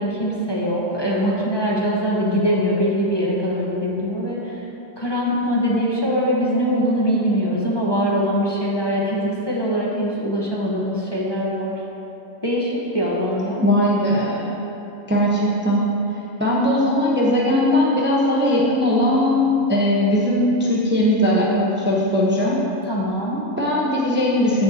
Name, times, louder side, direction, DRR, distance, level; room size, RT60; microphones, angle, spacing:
voice 1, 0.0-4.5 5.0-11.8 12.4-13.6 22.8-23.4, equal, 20° left, -5 dB, 1.0 m, -22 dB
voice 2, 13.6-14.4 15.1-15.8 16.4-22.6 23.6-24.6, left 1 dB, 10° right, -5 dB, 0.8 m, -19 dB
14.5 x 6.5 x 2.9 m, 3.0 s
omnidirectional pair, 1.4 m